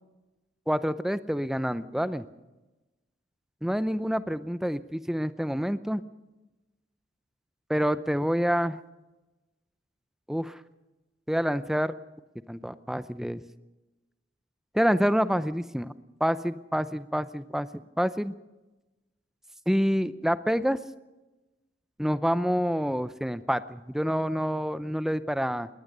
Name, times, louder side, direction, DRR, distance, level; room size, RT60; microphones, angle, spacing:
voice 1, 0.7-2.2 3.6-6.0 7.7-8.8 10.3-10.6 11.3-11.9 12.5-13.4 14.7-15.9 16.2-18.3 19.7-20.8 22.0-25.7, equal, ahead, 13 dB, 0.6 m, -27 dB
21.0 x 18.5 x 6.8 m, 1.1 s
head